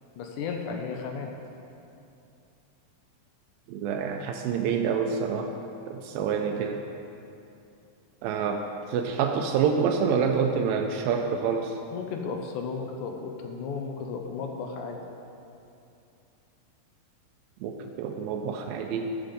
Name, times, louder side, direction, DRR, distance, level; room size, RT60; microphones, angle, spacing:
voice 1, 0.2-1.3 11.9-15.0, left 5 dB, 75° left, 3 dB, 1.9 m, -34 dB
voice 2, 3.7-5.5 5.9-6.8 8.2-11.8 17.6-19.1, right 6 dB, 85° right, 3 dB, 2.2 m, -27 dB
14.5 x 5.2 x 5.1 m, 2.7 s
omnidirectional pair, 4.2 m